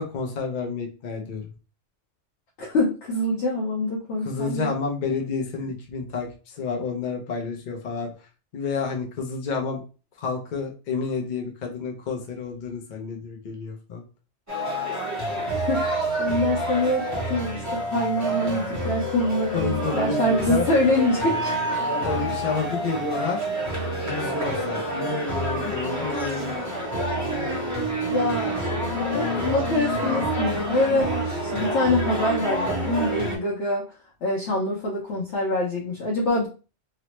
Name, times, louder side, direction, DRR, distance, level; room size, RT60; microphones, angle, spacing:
voice 1, 0.0-1.5 4.2-8.1 8.5-9.8 10.2-14.0 19.5-20.7 21.8-23.5 24.0-26.5, left 4 dB, 50° left, 1 dB, 0.6 m, -30 dB
voice 2, 2.6-4.7 15.1-15.2 15.5-21.5 28.1-28.6 29.1-33.8 34.2-36.5, left 1 dB, 70° left, -4 dB, 1.0 m, -25 dB
sound 1, 14.5-33.4, right 1 dB, 15° right, 0.8 m, -27 dB
3.0 x 2.0 x 3.0 m, 0.34 s
omnidirectional pair, 1.3 m